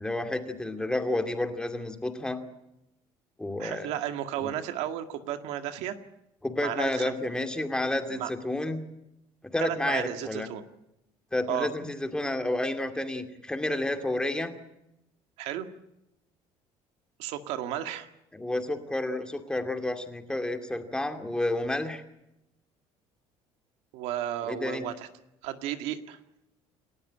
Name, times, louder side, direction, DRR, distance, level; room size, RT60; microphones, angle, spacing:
voice 1, 0.0-2.4 3.4-3.9 4.4-4.5 6.4-8.8 9.5-10.5 11.3-14.6 18.3-22.0 24.4-24.9, left 1 dB, 5° left, 5 dB, 2.4 m, -30 dB
voice 2, 3.6-6.0 6.6-7.2 8.1-8.3 9.6-10.6 11.5-11.7 15.4-15.7 17.2-18.1 23.9-25.1 25.4-26.2, right 12 dB, 80° right, 7 dB, 1.9 m, -33 dB
29.0 x 13.0 x 10.0 m, 0.87 s
cardioid pair, 130°, 11 cm